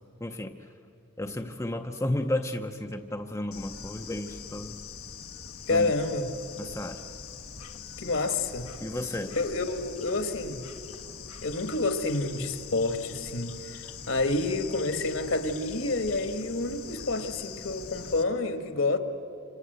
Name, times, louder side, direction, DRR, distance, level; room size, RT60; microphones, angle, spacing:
voice 1, 0.2-0.6 1.2-4.8 5.7-5.9 6.6-7.0 8.8-9.4, left 1 dB, 15° left, 0.7 m, -32 dB
Bird / Insect, 3.5-18.2, left 6 dB, 85° left, 1.5 m, -43 dB
voice 2, 5.7-6.3 8.0-8.7 9.3-10.6 11.4-19.0, left 2 dB, 60° left, 1.7 m, -29 dB
27.5 x 26.5 x 8.0 m
head